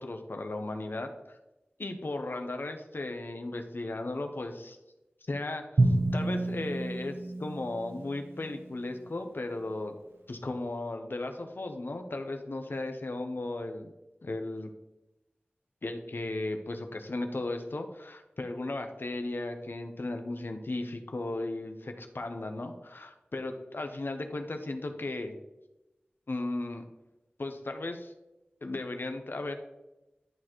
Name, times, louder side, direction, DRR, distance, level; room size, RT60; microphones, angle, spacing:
voice 1, 0.0-1.4 1.8-4.8 5.3-7.1 7.4-9.9 10.3-13.9 14.2-14.7 15.8-25.4 26.3-26.8 27.4-28.1 28.6-29.5, left 2 dB, 70° left, 5 dB, 0.7 m, -36 dB
Drum, 5.8-8.7, right 2 dB, 75° right, 1.0 m, -29 dB
11.0 x 4.2 x 3.0 m, 0.99 s
wide cardioid pair, 60°, 4 cm